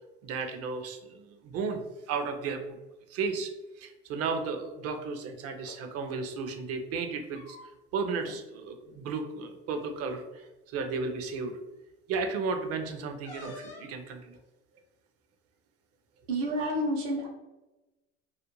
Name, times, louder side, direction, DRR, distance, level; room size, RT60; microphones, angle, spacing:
voice 1, 0.2-2.8 3.1-3.5 3.8-7.6 7.9-11.6 12.1-14.4, right 4 dB, 50° right, 6 dB, 0.5 m, -34 dB
sound 1, 5.6-5.8 7.0-7.9 8.2-8.4 8.8-9.0 10.0-10.1 10.7-11.0 13.2-14.0, left 3 dB, 70° left, 0.8 m, -47 dB
voice 2, 16.2-17.3, equal, 85° right, -1 dB, 0.7 m, -29 dB
2.4 x 2.1 x 3.0 m, 1.1 s
supercardioid pair, 85°, 31 cm